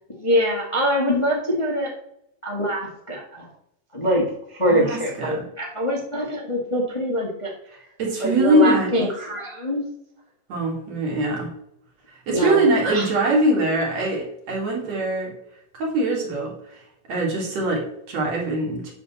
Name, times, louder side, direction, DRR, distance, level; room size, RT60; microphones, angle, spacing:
voice 1, 0.2-1.9 2.4-3.5 3.9-7.5 8.2-9.8 12.3-12.6 12.9-13.1, equal, 25° left, -2 dB, 0.7 m, -24 dB
voice 2, 4.7-5.4 8.0-9.1 10.5-11.5 12.1-15.3 15.8-16.5 17.1-18.9, right 1 dB, 55° right, -1 dB, 3.5 m, -22 dB
9.0 x 4.2 x 7.1 m, 0.77 s
omnidirectional pair, 3.9 m